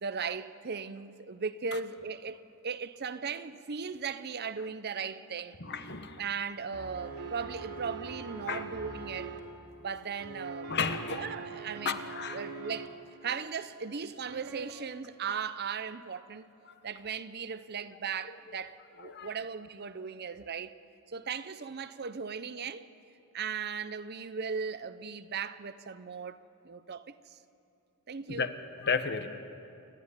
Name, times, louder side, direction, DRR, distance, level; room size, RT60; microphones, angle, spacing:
voice 1, 0.0-5.6 6.2-9.4 9.8-10.8 11.1-16.5 16.8-20.7 21.1-22.9 23.3-27.4 28.1-28.5, right 6 dB, 45° right, 0.6 m, -37 dB
voice 2, 5.6-6.2 8.5-8.6 10.7-11.3 11.8-12.4 19.0-19.3 28.3-28.5 28.8-29.3, left 5 dB, 50° left, 1.2 m, -32 dB
sound 1, 6.7-9.4 10.2-12.9 14.2-14.7, right 4 dB, 85° right, 2.9 m, -42 dB
29.0 x 12.5 x 9.8 m
head